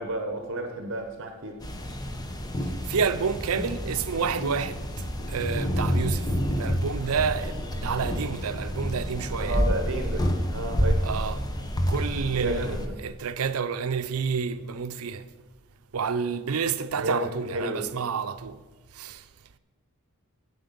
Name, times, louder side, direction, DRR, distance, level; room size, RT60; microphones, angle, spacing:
voice 1, 0.0-1.6 9.4-11.1 12.4-12.9 17.0-17.9, right 1 dB, 60° right, 0.9 m, -31 dB
sound 1, 1.6-12.9, equal, 20° left, 0.8 m, -29 dB
voice 2, 2.6-4.8 5.1-9.6 10.4-10.5 11.0-11.4 11.9-12.7 13.0-15.3 15.9-18.6 18.9-19.2, right 6 dB, 80° right, 0.6 m, -29 dB
8.5 x 7.8 x 6.8 m
head